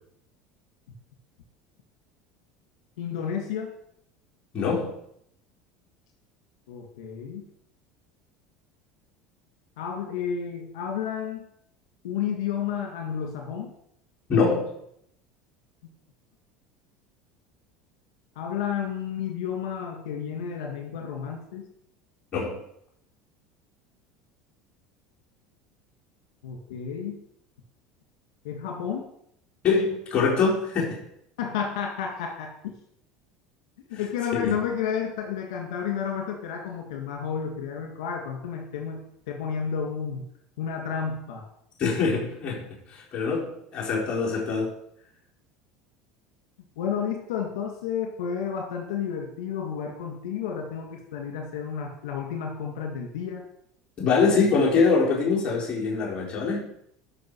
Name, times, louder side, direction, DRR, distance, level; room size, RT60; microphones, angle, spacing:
voice 1, 3.0-3.7 6.7-7.4 9.8-11.4 12.0-13.7 18.4-21.6 26.4-27.2 28.4-29.1 31.4-32.7 33.9-40.2 40.6-41.5 46.8-53.4, left 7 dB, 80° left, 1 dB, 2.1 m, -31 dB
voice 2, 4.5-5.0 14.3-14.7 22.3-22.6 29.6-31.0 33.9-34.0 34.3-34.5 41.8-44.7 54.0-56.7, left 4 dB, 40° left, -3 dB, 4.1 m, -24 dB
12.0 x 5.9 x 4.8 m, 0.72 s
supercardioid pair, 95°, 3 cm